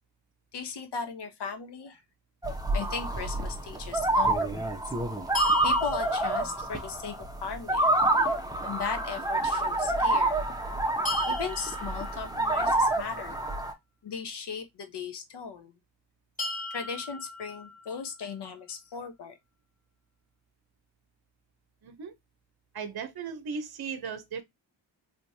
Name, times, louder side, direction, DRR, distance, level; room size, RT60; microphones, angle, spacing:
voice 1, 0.5-2.0 2.7-4.8 5.6-7.1 7.4-8.0 8.6-10.5 11.3-13.4 14.0-15.7 16.7-19.4, left 6 dB, 60° left, 1.0 m, -37 dB
sound 1, 2.4-13.7, right 1 dB, 10° right, 0.9 m, -27 dB
sound 2, 5.3-7.3 11.0-13.1 16.4-18.4, left 3 dB, 15° left, 1.5 m, -39 dB
voice 2, 21.8-22.1 22.7-24.4, right 6 dB, 55° right, 0.8 m, -36 dB
3.1 x 3.1 x 2.7 m
cardioid pair, 60°, 46 cm